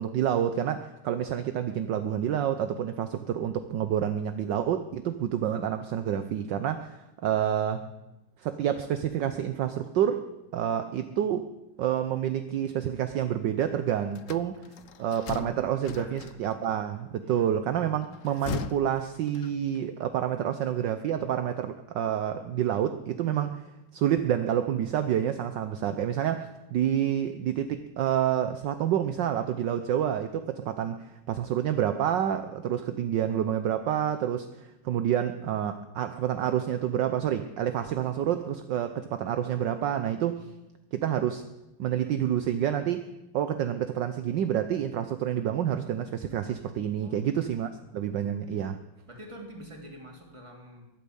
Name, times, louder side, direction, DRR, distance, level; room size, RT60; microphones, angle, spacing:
voice 1, 0.0-7.9 8.4-10.2 10.5-11.5 11.8-14.6 15.0-23.7 23.9-40.5 40.9-41.4 41.8-48.8, right 10 dB, 65° right, 10 dB, 1.4 m, -28 dB
voice 2, 7.2-8.1 15.7-16.4 17.2-17.5 47.0-47.3 47.6-48.0 49.1-50.9, equal, 15° right, 1 dB, 3.0 m, -48 dB
sound 1, 14.2-16.7 18.0-19.8, left 8 dB, 70° left, 0.7 m, -39 dB
14.0 x 12.0 x 8.7 m, 0.94 s
omnidirectional pair, 2.3 m